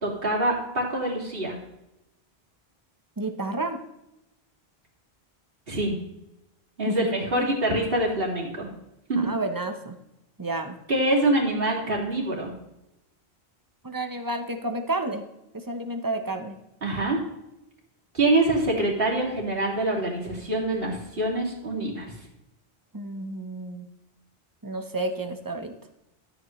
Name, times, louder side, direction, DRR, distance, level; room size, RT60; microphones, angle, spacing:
voice 1, 0.0-1.6 5.7-6.0 6.8-8.7 9.1-9.3 10.9-12.5 16.8-17.2 18.1-22.1, right 1 dB, 60° right, -2 dB, 2.8 m, -25 dB
voice 2, 3.2-3.8 6.9-7.1 7.3-7.5 9.2-10.0 10.4-10.8 13.8-15.2 15.5-16.6 22.9-23.9 24.6-25.7, right 2 dB, 20° right, 7 dB, 0.9 m, -31 dB
12.5 x 8.4 x 3.2 m, 0.88 s
omnidirectional pair, 1.1 m